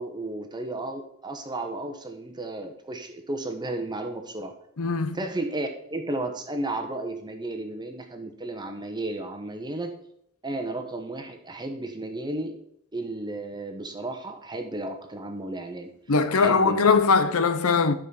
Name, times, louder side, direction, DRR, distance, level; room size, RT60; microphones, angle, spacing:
voice 1, 0.0-4.5 5.1-9.9 10.4-12.6 12.9-15.9 16.3-16.9, right 2 dB, 20° right, 1.1 m, -33 dB
voice 2, 4.8-5.2 16.1-17.9, left 4 dB, 85° left, 0.7 m, -21 dB
12.0 x 5.1 x 5.6 m
head